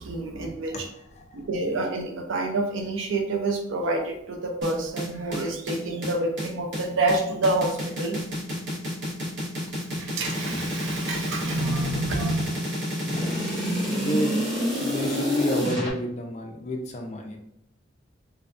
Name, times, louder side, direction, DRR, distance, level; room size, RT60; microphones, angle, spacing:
voice 1, 0.0-0.9 1.3-8.2 9.9-12.5, right 2 dB, 90° right, 3 dB, 0.5 m, -28 dB
voice 2, 0.7-1.5 13.0-13.5 13.9-14.4 14.8-17.4, equal, 35° left, 2 dB, 0.4 m, -31 dB
sound 1, 4.6-15.9, equal, 65° right, 0.9 m, -29 dB
2.7 x 2.2 x 2.4 m, 0.74 s
head